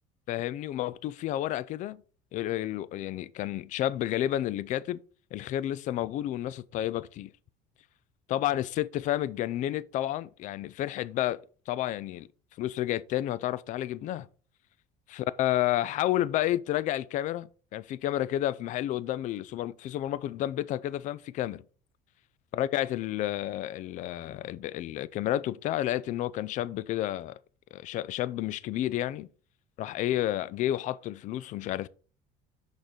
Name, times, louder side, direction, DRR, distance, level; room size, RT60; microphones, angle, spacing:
voice 1, 0.3-2.0 2.3-5.0 5.3-7.3 8.3-11.4 11.7-12.3 12.6-14.3 15.1-21.6 22.5-27.3 27.7-29.3 29.8-31.9, left 13 dB, 50° left, 0.4 m, -30 dB
6.5 x 5.3 x 4.4 m
cardioid pair, 125°, 16 cm